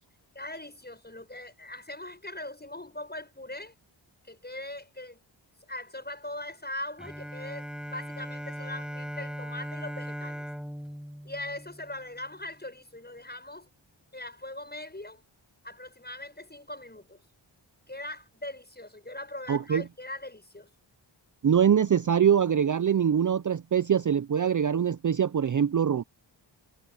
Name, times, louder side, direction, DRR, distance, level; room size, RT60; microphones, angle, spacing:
voice 1, 0.3-3.7 4.2-5.2 5.7-10.4 11.2-13.7 14.1-15.2 15.6-17.2 17.9-20.7, left 1 dB, 20° left, 7.5 m, -40 dB
Bowed string instrument, 7.0-12.5, equal, ahead, 7.2 m, -39 dB
voice 2, 19.5-19.8 21.4-26.0, right 8 dB, 40° right, 0.6 m, -23 dB
cardioid pair, 55°, 50 cm